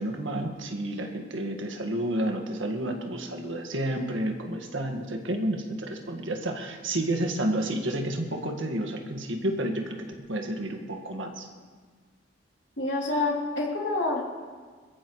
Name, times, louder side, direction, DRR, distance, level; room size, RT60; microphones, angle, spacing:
voice 1, 0.0-10.0 10.3-11.5, right 1 dB, 85° right, 3 dB, 1.7 m, -30 dB
voice 2, 12.8-14.4, left 2 dB, 70° left, -2 dB, 3.1 m, -28 dB
22.5 x 14.0 x 3.2 m, 1.5 s
head